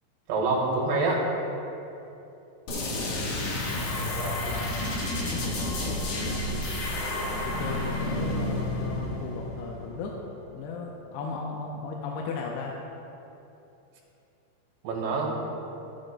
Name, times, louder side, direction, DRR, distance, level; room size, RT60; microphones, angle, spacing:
voice 1, 0.3-1.3 4.2-4.6 14.8-15.3, right 3 dB, 75° right, -3 dB, 3.8 m, -27 dB
sound 1, 2.7-10.2, left 1 dB, 65° left, 2.9 m, -30 dB
voice 2, 3.2-4.7 5.5-10.2 10.5-12.7, left 4 dB, 85° left, -1 dB, 2.7 m, -37 dB
16.0 x 8.9 x 2.2 m, 2.9 s
omnidirectional pair, 4.8 m